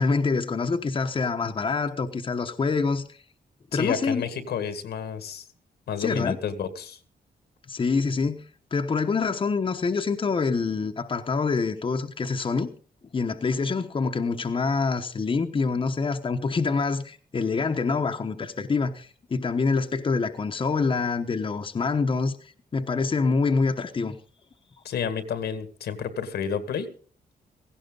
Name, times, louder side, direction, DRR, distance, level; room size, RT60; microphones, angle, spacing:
voice 1, 0.0-3.1 3.7-4.2 6.0-6.4 7.7-8.4 8.7-12.7 13.1-22.4 22.7-24.2, left 4 dB, 30° left, 5 dB, 1.1 m, -26 dB
voice 2, 3.7-5.4 5.9-7.0 24.8-26.9, left 7 dB, 85° left, 10 dB, 2.0 m, -30 dB
17.0 x 16.0 x 4.0 m, 0.42 s
cardioid pair, 125°, 16 cm